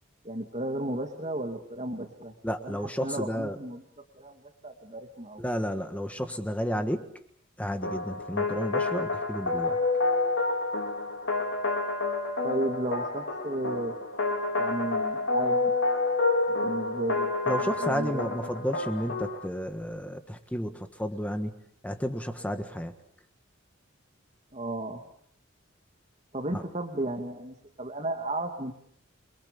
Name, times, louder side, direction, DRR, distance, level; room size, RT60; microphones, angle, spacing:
voice 1, 0.2-2.3 2.6-3.8 4.1-5.4 12.4-13.9 14.6-15.7 16.6-17.3 17.6-18.2 24.5-25.0 26.3-28.7, right 1 dB, 35° right, 3 dB, 2.5 m, -34 dB
voice 2, 2.4-3.6 5.4-7.1 7.6-9.8 17.5-21.6 21.8-22.9 26.5-26.6, equal, 5° left, 6 dB, 1.5 m, -32 dB
sound 1, 7.8-19.4, left 3 dB, 70° left, 4.2 m, -29 dB
29.0 x 22.5 x 7.0 m, 0.67 s
head